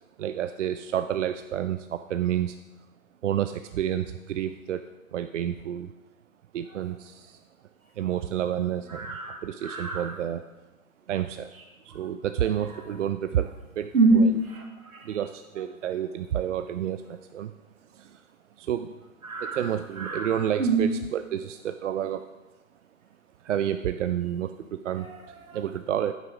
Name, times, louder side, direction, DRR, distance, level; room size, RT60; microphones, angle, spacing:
voice 1, 0.2-2.6 3.2-4.8 5.1-5.9 6.5-7.4 8.0-10.4 11.1-11.5 11.8-14.3 15.0-17.5 17.9-18.2 18.6-19.0 19.4-22.3 23.4-25.1 25.5-26.1, right 10 dB, 60° right, 9 dB, 0.5 m, -30 dB
voice 2, 8.9-10.2 11.9-12.1 12.7-12.8 13.9-15.2 19.2-19.7 20.0-21.0 24.9-25.6, right 3 dB, 80° right, 3 dB, 2.0 m, -26 dB
9.1 x 8.3 x 4.9 m, 1.2 s
figure-of-eight pair, 115°, 41 cm